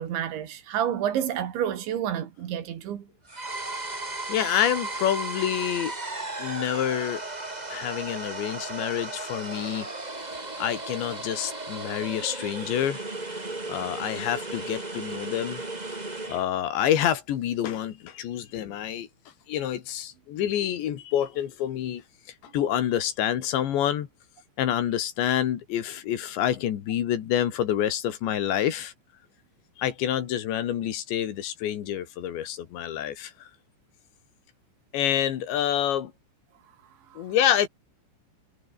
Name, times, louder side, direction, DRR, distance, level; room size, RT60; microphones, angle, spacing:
voice 1, 0.0-3.1 37.1-37.2, right 10 dB, 70° right, 4.7 m, -29 dB
sound 1, 3.3-16.5, right 2 dB, 35° right, 0.6 m, -35 dB
voice 2, 4.3-5.9 6.4-7.2 7.7-9.9 10.6-13.0 13.7-15.6 16.3-19.1 19.5-22.0 22.5-24.1 24.6-28.9 29.8-33.5 34.9-36.1 37.2-37.7, left 10 dB, 70° left, 4.2 m, -27 dB
omnidirectional pair, 5.5 m